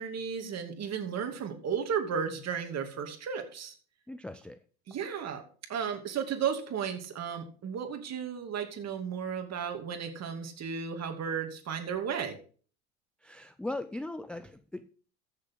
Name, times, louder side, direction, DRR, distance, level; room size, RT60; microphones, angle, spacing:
voice 1, 0.0-3.7 4.9-5.4 5.7-12.3, right 7 dB, 40° right, 5 dB, 2.6 m, -34 dB
voice 2, 4.1-4.6 13.2-14.9, left 2 dB, 5° left, 12 dB, 0.4 m, -39 dB
14.5 x 7.1 x 3.7 m, 0.41 s
hypercardioid pair, 85°, 42 cm